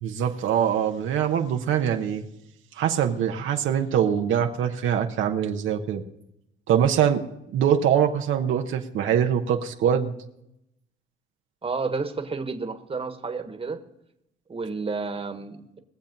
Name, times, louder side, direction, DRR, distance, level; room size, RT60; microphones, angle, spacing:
voice 1, 0.0-2.2 2.8-6.0 6.7-7.2 7.5-10.1, right 9 dB, 80° right, 4 dB, 1.0 m, -23 dB
voice 2, 11.6-13.8 14.5-15.8, right 4 dB, 30° right, 7 dB, 1.4 m, -31 dB
21.0 x 7.3 x 5.3 m, 0.82 s
cardioid pair, 90°, 20 cm